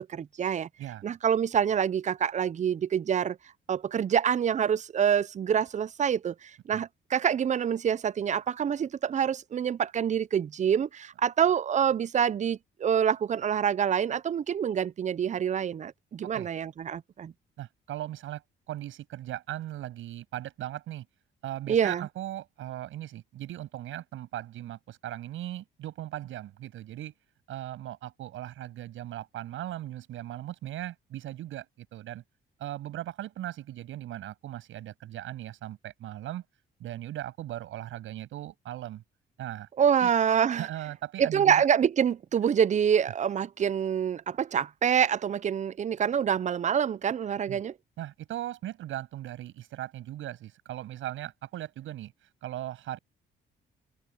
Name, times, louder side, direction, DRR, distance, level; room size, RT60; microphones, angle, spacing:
voice 1, 0.0-0.7 1.0-3.4 3.7-17.3 21.7-22.1 39.8-40.7 41.2-47.7, right 8 dB, 40° right, 0.5 m, -26 dB
voice 2, 17.6-21.1 21.4-27.1 27.5-32.2 32.6-36.4 36.8-39.0 39.4-39.7 40.0-40.1 40.6-41.7 47.5-47.6 48.0-53.0, right 13 dB, 85° right, 7.8 m, -38 dB
cardioid pair, 90°, 20 cm